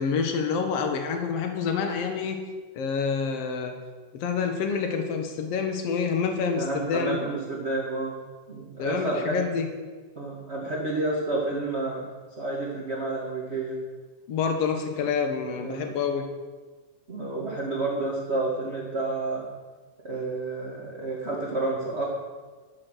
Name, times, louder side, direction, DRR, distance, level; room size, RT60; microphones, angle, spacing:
voice 1, 0.0-2.4 2.8-3.7 4.1-7.2 8.8-9.7 14.3-16.2, left 6 dB, 55° left, 5 dB, 1.9 m, -27 dB
voice 2, 6.5-8.2 8.5-9.5 10.1-12.0 12.4-13.8 15.0-15.1 15.6-16.0 17.1-19.5 20.0-22.0, right 2 dB, 30° right, -4 dB, 1.2 m, -30 dB
12.0 x 8.9 x 6.4 m, 1.4 s
omnidirectional pair, 4.2 m